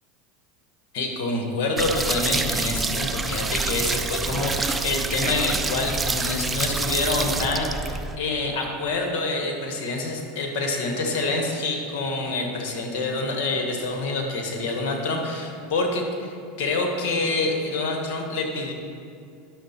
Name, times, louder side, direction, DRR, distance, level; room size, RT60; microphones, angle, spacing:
voice 1, 0.9-18.7, left 3 dB, 65° left, 3 dB, 1.6 m, -27 dB
sound 1, 1.8-8.2, right 3 dB, 15° right, 0.5 m, -27 dB
10.0 x 6.6 x 4.4 m, 2.4 s
hypercardioid pair, 105°, 0 cm